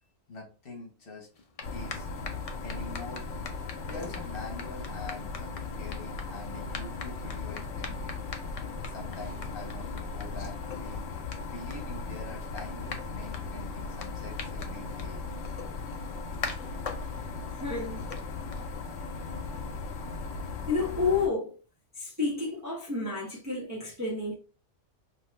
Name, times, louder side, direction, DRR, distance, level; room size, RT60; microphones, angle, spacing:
voice 1, 0.3-1.4 1.7-2.1 2.6-3.3 3.8-8.1 8.8-11.0 11.4-15.2, left 2 dB, 55° left, 1.0 m, -45 dB
sound 1, 1.3-19.1, left 4 dB, 70° left, 0.3 m, -45 dB
sound 2, 1.6-21.3, left 4 dB, 90° left, 0.9 m, -37 dB
voice 2, 17.6-18.0 20.7-21.5 22.0-24.3, left 4 dB, 20° right, 0.6 m, -30 dB
2.9 x 2.1 x 3.0 m
omnidirectional pair, 1.2 m